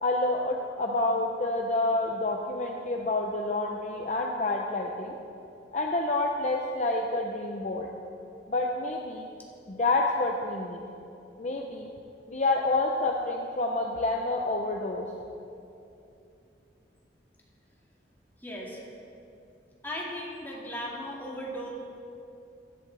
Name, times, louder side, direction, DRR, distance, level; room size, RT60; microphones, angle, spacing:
voice 1, 0.0-5.2 5.7-7.9 8.5-9.3 9.7-10.8 11.4-11.9 12.3-15.1, left 2 dB, 40° left, 1 dB, 0.6 m, -28 dB
voice 2, 18.4-18.8 19.8-21.7, equal, 10° left, -4 dB, 2.0 m, -37 dB
15.5 x 11.0 x 3.3 m, 2.7 s
head